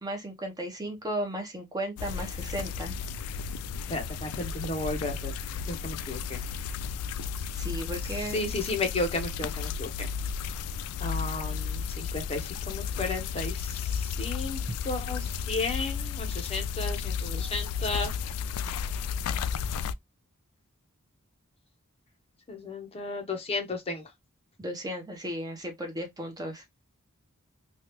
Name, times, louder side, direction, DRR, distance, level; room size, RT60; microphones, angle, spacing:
voice 1, 0.0-3.0 7.5-8.5 24.6-26.6, equal, 20° right, 0.7 m, -35 dB
sound 1, 2.0-19.9, left 6 dB, 85° left, 0.3 m, -33 dB
voice 2, 3.9-5.3 5.7-6.4 8.3-10.1 11.0-14.6 14.9-18.1 22.5-24.0, left 2 dB, 25° left, 0.7 m, -33 dB
3.2 x 2.3 x 2.9 m
head